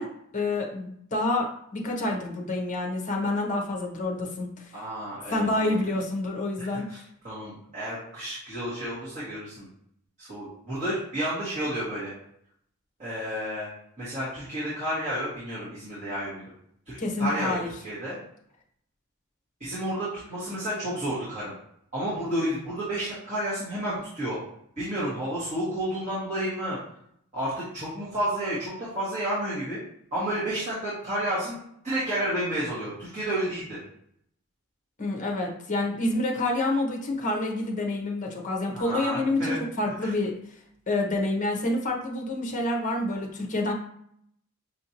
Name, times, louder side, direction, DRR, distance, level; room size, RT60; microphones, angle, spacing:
voice 1, 0.0-4.7 5.3-6.9 17.0-17.7 35.0-40.4 40.9-43.7, left 2 dB, 35° left, 1 dB, 0.8 m, -28 dB
voice 2, 4.7-5.7 6.6-7.0 7.2-9.7 10.2-12.1 13.0-13.7 14.0-16.4 16.8-17.6 17.8-18.2 19.6-21.5 21.9-24.4 24.8-26.8 27.3-29.8 30.1-31.6 31.8-33.8 38.7-39.6 40.0-40.1, right 1 dB, 30° right, -11 dB, 1.5 m, -31 dB
5.8 x 2.6 x 2.9 m, 0.70 s
head